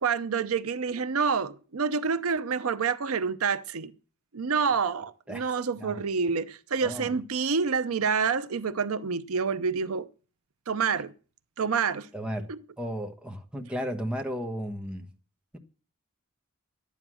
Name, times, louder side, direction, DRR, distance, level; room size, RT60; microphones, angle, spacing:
voice 1, 0.0-3.9 4.3-10.1 10.7-11.1 11.6-12.1 12.5-12.6, right 5 dB, 85° right, 0.6 m, -28 dB
voice 2, 12.1-12.5 12.8-15.1, equal, 5° right, 1.2 m, -34 dB
12.0 x 9.3 x 6.2 m
head